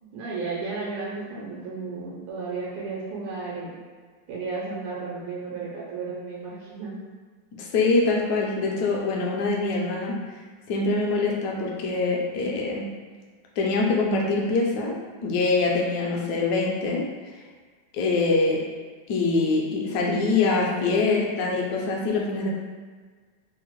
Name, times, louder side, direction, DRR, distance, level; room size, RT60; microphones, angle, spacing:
voice 1, 0.0-3.7 4.3-7.0, right 4 dB, 85° right, -5 dB, 1.5 m, -33 dB
voice 2, 7.6-10.1 10.7-12.9 13.6-14.9 15.2-17.0 17.9-18.6 19.1-22.5, left 3 dB, 70° left, -1 dB, 1.0 m, -24 dB
3.5 x 2.0 x 3.0 m, 1.5 s
omnidirectional pair, 2.1 m